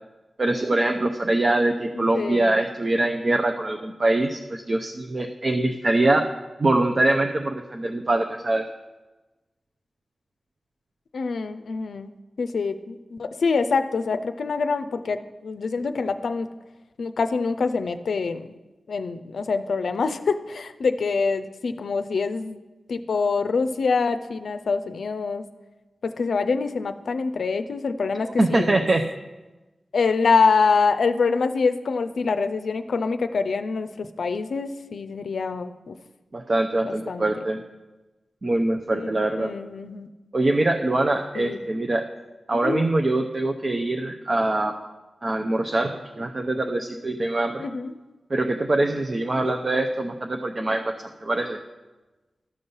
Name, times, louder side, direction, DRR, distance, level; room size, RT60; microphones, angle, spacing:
voice 1, 0.4-6.3 6.6-8.6 28.4-29.0 36.3-37.6 38.4-39.5 40.3-42.0 42.5-44.7 45.2-47.6 48.3-51.6, right 2 dB, 50° right, 4 dB, 0.6 m, -23 dB
voice 2, 2.0-2.6 11.1-12.1 12.4-16.5 17.0-18.5 18.9-22.6 22.9-25.4 26.0-28.9 29.9-36.0 36.8-37.3 38.9-40.1 41.3-41.6 42.6-42.8 47.6-47.9 49.4-49.6, left 4 dB, 80° left, 9 dB, 0.4 m, -25 dB
13.0 x 5.4 x 5.5 m, 1.1 s
cardioid pair, 60°, 0 cm